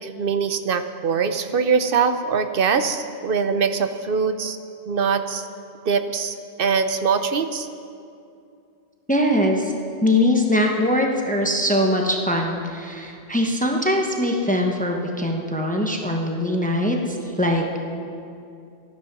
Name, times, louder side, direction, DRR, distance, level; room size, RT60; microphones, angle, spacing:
voice 1, 0.0-4.6 4.9-5.5 5.9-7.7, right 6 dB, 65° right, 9 dB, 0.9 m, -22 dB
voice 2, 9.1-9.7 10.0-17.8, left 1 dB, 10° left, 1 dB, 1.0 m, -22 dB
14.0 x 11.5 x 6.0 m, 2.6 s
omnidirectional pair, 1.1 m